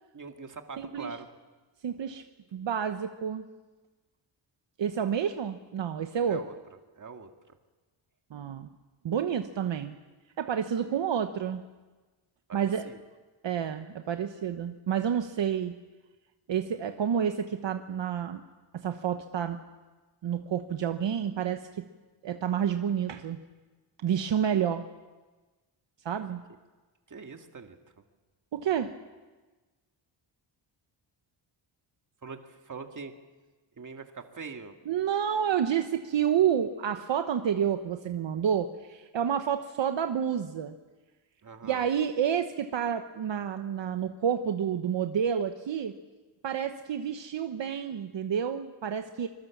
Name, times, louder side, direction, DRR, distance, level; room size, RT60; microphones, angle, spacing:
voice 1, 0.1-1.3 6.3-6.5 7.0-7.6 12.5-13.0 27.1-27.8 32.2-33.1 33.8-34.8 41.4-41.9, right 5 dB, 40° right, 5 dB, 2.1 m, -43 dB
voice 2, 0.8-1.2 1.8-2.2 2.5-3.4 4.8-6.4 8.3-8.7 9.0-10.0 10.4-11.6 12.5-12.9 13.4-15.8 16.5-18.4 18.7-19.6 20.2-21.8 22.2-23.4 24.0-24.9 26.0-26.4 28.5-29.0 34.9-40.7 41.6-45.9 46.4-49.3, right 8 dB, 65° right, 7 dB, 1.1 m, -29 dB
25.0 x 22.5 x 7.3 m, 1.3 s
wide cardioid pair, 125°, 48 cm